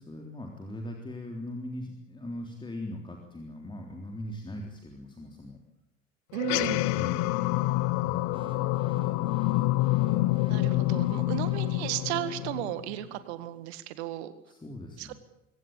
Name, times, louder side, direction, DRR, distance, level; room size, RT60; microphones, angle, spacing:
voice 1, 0.0-5.6 6.9-7.3 8.0-8.5 14.5-15.1, left 1 dB, 10° left, 2 dB, 3.6 m, -40 dB
sound 1, 6.3-13.1, left 18 dB, 50° left, 1.0 m, -27 dB
voice 2, 6.3-6.9 10.5-14.3 15.0-15.1, right 14 dB, 60° right, 13 dB, 1.8 m, -34 dB
sound 2, 8.3-13.5, right 4 dB, 15° right, 3.6 m, -49 dB
23.0 x 17.5 x 8.9 m, 0.81 s
figure-of-eight pair, 70°, 37 cm